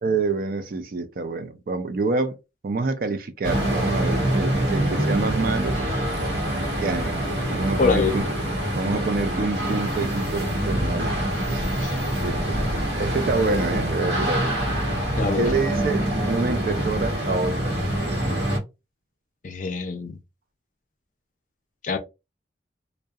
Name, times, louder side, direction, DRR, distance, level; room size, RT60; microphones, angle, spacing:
voice 1, 0.0-2.4 2.6-5.8 6.7-8.2 8.7-11.6 12.2-12.6 13.0-14.6 15.4-17.7, right 3 dB, 50° right, 0.4 m, -27 dB
sound 1, 3.4-18.6, right 1 dB, 70° right, 0.9 m, -25 dB
voice 2, 7.8-8.2 11.8-11.9 15.2-15.5 19.4-20.2 21.8-22.0, left 4 dB, 45° left, 0.4 m, -24 dB
2.7 x 2.1 x 2.3 m
head